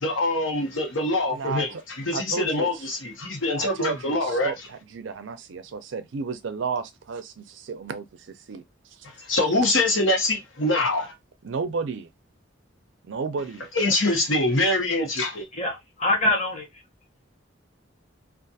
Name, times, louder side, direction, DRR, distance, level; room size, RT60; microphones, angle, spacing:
voice 1, 0.0-1.7 2.0-4.5 9.2-11.1 13.7-15.5, left 2 dB, 85° left, 0.9 m, -24 dB
voice 2, 1.3-1.8 2.1-2.9 3.6-8.6 9.6-9.7 10.8-11.0 11.4-12.1 13.0-13.7, right 5 dB, 70° right, 0.4 m, -33 dB
voice 3, 15.5-16.8, left 1 dB, 35° left, 0.9 m, -25 dB
2.4 x 2.4 x 2.6 m
head